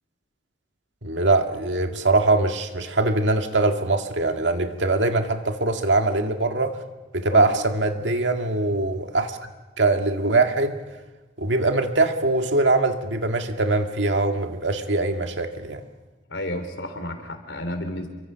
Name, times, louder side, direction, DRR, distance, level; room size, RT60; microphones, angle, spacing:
voice 1, 1.0-6.8 7.1-9.4 9.8-10.8 11.4-15.8, right 2 dB, 75° right, 5 dB, 2.1 m, -22 dB
voice 2, 16.3-18.1, left 1 dB, 80° left, 7 dB, 3.8 m, -31 dB
28.5 x 24.0 x 5.8 m, 1.2 s
head